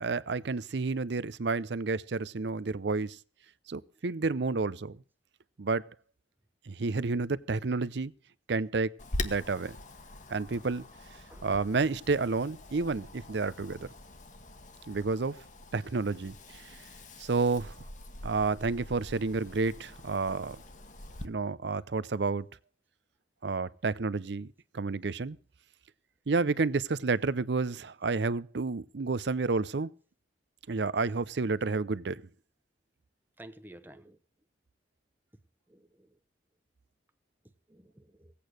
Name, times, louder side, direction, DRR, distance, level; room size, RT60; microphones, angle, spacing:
voice 1, 0.0-3.2 3.7-5.0 5.6-5.9 6.7-8.1 8.5-8.9 9.2-9.8 10.3-10.8 11.4-13.9 14.9-15.4 15.7-16.8 17.2-17.8 18.2-20.6 21.2-22.5 23.4-24.5 24.7-25.4 26.3-29.9 30.7-32.2, right 3 dB, 65° right, 0.6 m, -30 dB
Wind, 9.0-21.3, left 2 dB, 40° left, 1.3 m, -44 dB
voice 2, 33.4-34.2 35.7-36.2 37.7-38.3, right 1 dB, 10° right, 0.9 m, -52 dB
17.5 x 8.5 x 6.3 m
head